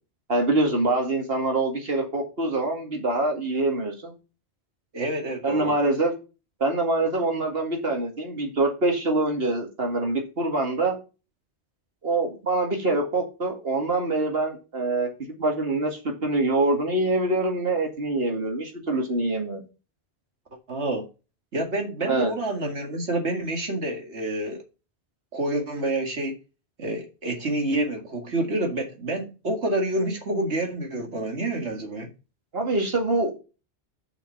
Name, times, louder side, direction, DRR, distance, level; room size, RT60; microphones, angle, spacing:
voice 1, 0.3-4.1 5.4-6.1 6.6-11.0 12.0-15.1 15.4-19.6 22.0-22.3 32.5-33.4, right 2 dB, 60° right, 2.4 m, -25 dB
voice 2, 4.9-5.8 20.7-21.1 21.5-24.6 25.3-26.4 26.8-32.1, right 1 dB, 80° right, 2.3 m, -28 dB
7.1 x 5.7 x 5.6 m
omnidirectional pair, 1.1 m